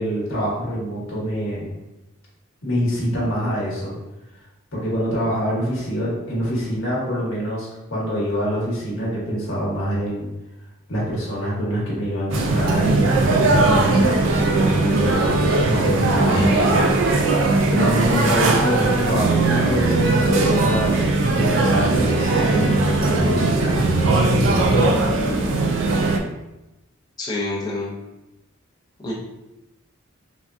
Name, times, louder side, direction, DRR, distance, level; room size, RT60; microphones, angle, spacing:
voice 1, 0.0-1.7 2.6-4.0 4.7-10.3 10.9-16.9 17.7-20.9 21.3-24.9, equal, 65° left, -6 dB, 1.0 m, -25 dB
sound 1, 12.3-26.2, right 2 dB, 60° right, 0.3 m, -19 dB
voice 2, 16.3-16.7 27.2-27.9 29.0-29.1, left 2 dB, 20° left, -5 dB, 0.5 m, -27 dB
3.5 x 2.2 x 2.4 m, 0.96 s
head